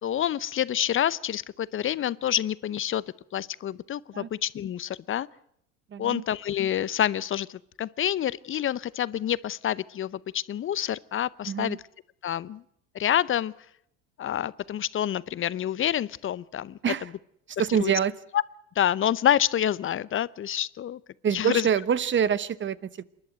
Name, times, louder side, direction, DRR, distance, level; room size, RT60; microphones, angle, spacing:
voice 1, 0.0-3.0 3.3-5.3 6.0-11.8 12.2-12.6 12.9-13.5 14.2-16.8 17.8-17.9 18.3-18.4 18.8-21.0 21.3-21.7, left 10 dB, 35° left, 19 dB, 0.7 m, -27 dB
voice 2, 5.9-6.2 11.5-11.8 16.8-17.1 17.6-18.1 21.2-23.0, right 8 dB, 30° right, 19 dB, 1.0 m, -26 dB
27.5 x 11.5 x 9.3 m, 0.75 s
hypercardioid pair, 80°, 37 cm